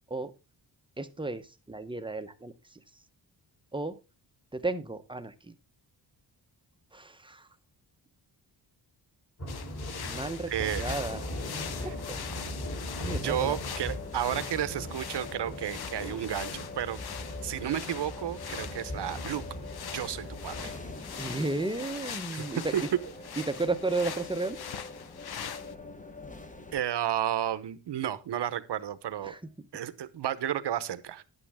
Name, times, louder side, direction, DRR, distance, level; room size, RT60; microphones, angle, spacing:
voice 1, 1.0-2.8 3.7-4.0 4.5-5.5 6.9-7.5 10.0-11.2 11.8-12.2 13.0-13.5 21.2-22.7 23.4-24.6 29.2-29.7, right 3 dB, 10° right, 9 dB, 0.8 m, -33 dB
sound 1, 9.4-21.0, equal, 35° left, 3.7 m, -39 dB
sound 2, 9.5-25.7, left 8 dB, 60° left, 0.9 m, -42 dB
voice 2, 10.5-11.0 11.8-11.9 13.1-17.0 17.4-19.4 19.8-20.7 22.7-22.8 26.7-29.3 29.7-31.2, right 11 dB, 70° right, 14 dB, 1.0 m, -32 dB
sound 3, 11.1-26.8, left 3 dB, 20° left, 1.0 m, -45 dB
11.0 x 8.8 x 3.5 m, 0.28 s
wide cardioid pair, 140°, 43 cm